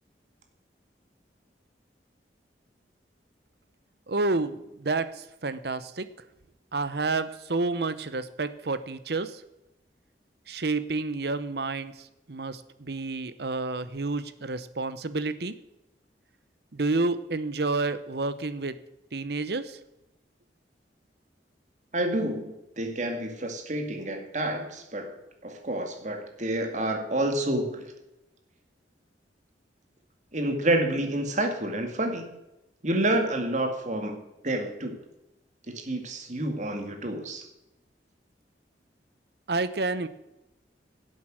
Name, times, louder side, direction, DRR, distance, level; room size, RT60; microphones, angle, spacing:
voice 1, 4.1-6.1 6.7-9.4 10.5-15.6 16.7-18.8 19.1-19.8 39.5-40.1, right 3 dB, 65° right, 13 dB, 0.9 m, -29 dB
voice 2, 21.9-25.2 25.4-27.9 30.3-32.3 32.8-35.0 35.7-37.4, right 1 dB, 45° right, 5 dB, 2.1 m, -29 dB
11.5 x 8.0 x 7.6 m, 0.91 s
head